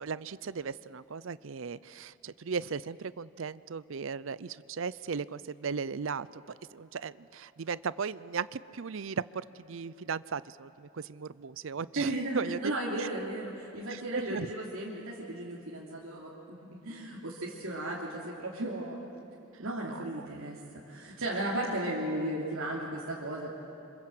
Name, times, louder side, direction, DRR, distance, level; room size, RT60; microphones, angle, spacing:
voice 1, 0.0-12.7 13.0-13.1 13.9-14.5 19.9-20.3, right 5 dB, 65° right, 18 dB, 0.6 m, -37 dB
voice 2, 11.9-19.0 19.6-23.5, right 1 dB, 80° right, -6 dB, 3.0 m, -35 dB
28.0 x 26.0 x 7.8 m, 2.8 s
head